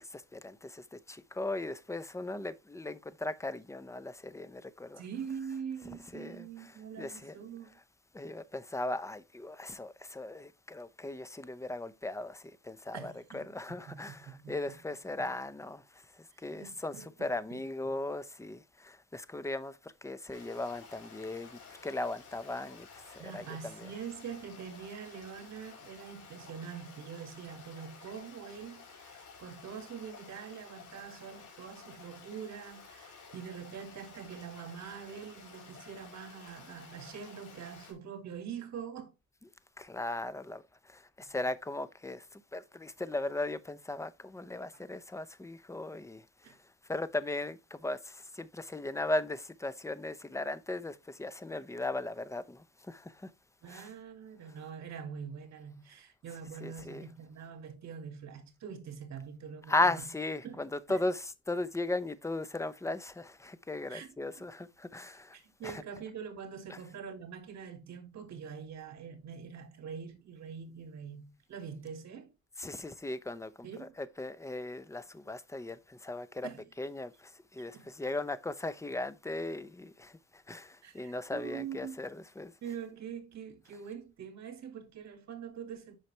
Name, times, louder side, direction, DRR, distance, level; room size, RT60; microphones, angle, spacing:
voice 1, 0.0-5.0 5.8-7.3 8.1-23.9 39.8-46.6 46.9-53.3 53.6-53.9 56.6-57.1 59.7-65.4 65.6-65.8 66.7-66.8 72.6-76.5 76.8-82.5, left 2 dB, 10° left, 0.7 m, -37 dB
voice 2, 5.0-7.8 12.9-14.6 16.3-17.6 23.2-39.1 46.4-46.6 53.6-59.8 60.4-60.6 60.9-61.0 63.9-64.4 65.3-72.3 73.6-73.9 76.4-76.7 77.7-77.9 80.8-82.0 82.6-86.0, right 7 dB, 60° right, 2.2 m, -44 dB
Stream, 20.3-37.9, left 5 dB, 80° left, 3.8 m, -53 dB
7.9 x 5.8 x 3.3 m
cardioid pair, 90°, 30 cm